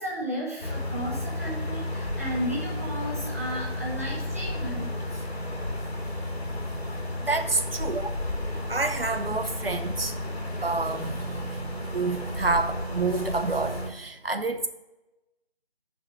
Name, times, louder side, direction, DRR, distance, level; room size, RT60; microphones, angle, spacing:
voice 1, 0.0-4.9 7.8-8.0, equal, 15° right, -6 dB, 1.0 m, -34 dB
sound 1, 0.6-13.9, left 1 dB, 85° left, 1.8 m, -32 dB
voice 2, 7.2-8.1 8.7-10.1 10.6-11.2 11.9-14.7, right 3 dB, 65° right, 9 dB, 0.7 m, -28 dB
6.9 x 5.4 x 6.5 m, 0.99 s
figure-of-eight pair, 170°, 31 cm